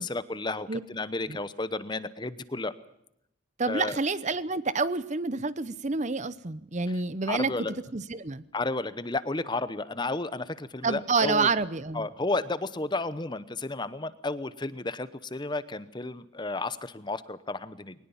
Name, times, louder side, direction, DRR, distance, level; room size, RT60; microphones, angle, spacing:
voice 1, 0.0-2.7 3.7-4.0 7.3-7.7 8.5-11.5 11.9-17.9, left 2 dB, 20° left, 15 dB, 0.9 m, -32 dB
voice 2, 3.6-7.5 7.9-8.4 10.8-12.1, right 4 dB, 35° right, 16 dB, 0.8 m, -28 dB
21.5 x 19.5 x 7.2 m, 0.78 s
head